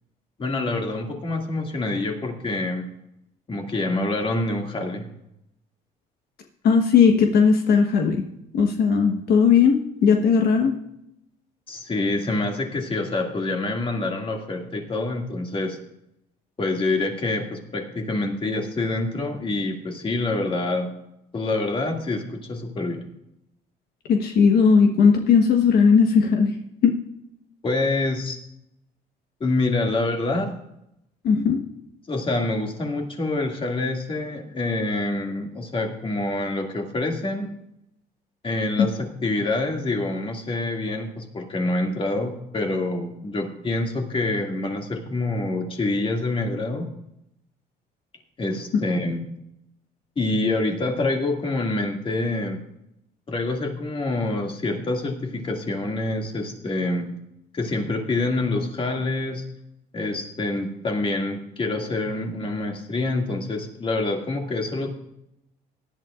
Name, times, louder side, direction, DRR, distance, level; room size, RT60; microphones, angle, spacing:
voice 1, 0.4-2.9 3.5-5.1 11.7-15.8 16.6-20.9 21.3-23.1 27.6-28.4 29.4-30.5 32.1-37.5 38.4-46.9 48.4-49.2 50.2-52.6 53.3-57.1 57.5-59.4 59.9-64.9, left 2 dB, 30° left, 2 dB, 2.3 m, -26 dB
voice 2, 6.6-8.2 8.5-9.8 10.0-10.7 24.1-26.6 26.8-27.0 31.2-31.6 38.8-38.9 48.7-48.8, left 6 dB, 65° left, 3 dB, 1.3 m, -17 dB
18.0 x 11.5 x 2.5 m, 0.81 s
cardioid pair, 110°, 17 cm